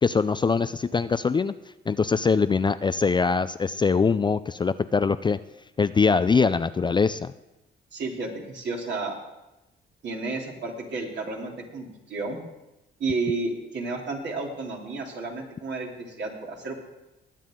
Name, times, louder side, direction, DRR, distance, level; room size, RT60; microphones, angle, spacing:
voice 1, 0.0-1.5 1.9-5.4 5.8-7.3, left 5 dB, 25° left, 13 dB, 0.4 m, -23 dB
voice 2, 7.9-9.1 10.0-12.4 13.0-16.7, right 3 dB, 65° right, -1 dB, 3.2 m, -32 dB
20.0 x 9.2 x 3.8 m, 0.97 s
cardioid pair, 90°, 20 cm